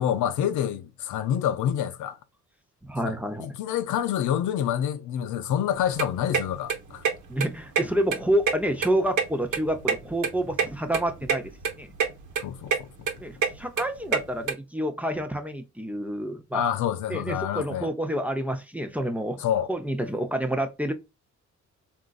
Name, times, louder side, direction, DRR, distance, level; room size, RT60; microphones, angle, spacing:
voice 1, 0.0-2.2 3.0-3.1 3.4-7.0 12.4-12.9 16.5-17.9 19.4-19.7, left 10 dB, 75° left, 0.6 m, -27 dB
voice 2, 2.9-3.5 7.3-11.5 11.8-11.9 13.2-16.6 17.1-19.4 19.7-20.9, right 1 dB, 5° right, 0.6 m, -28 dB
sound 1, 5.7-14.5, right 6 dB, 75° right, 1.0 m, -28 dB
3.6 x 2.5 x 2.3 m
cardioid pair, 90°, 30 cm